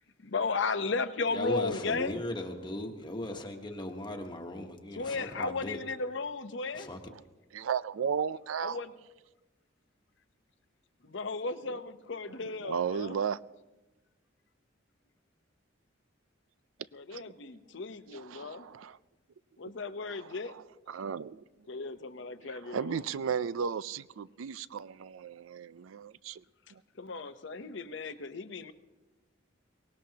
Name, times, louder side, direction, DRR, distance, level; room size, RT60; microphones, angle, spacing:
voice 1, 0.2-2.2 4.9-6.9 8.6-8.9 11.0-13.2 16.9-18.7 19.6-20.5 21.7-23.0 27.0-28.7, left 4 dB, 65° left, 0.8 m, -35 dB
voice 2, 1.3-5.8 6.7-7.0, left 1 dB, 25° left, 1.1 m, -38 dB
voice 3, 7.5-8.8 11.7-11.8 12.4-13.4 17.1-17.2 18.1-19.0 20.1-21.4 22.4-26.4 26.7-26.8, right 7 dB, 90° right, 0.4 m, -35 dB
23.5 x 18.5 x 2.9 m
head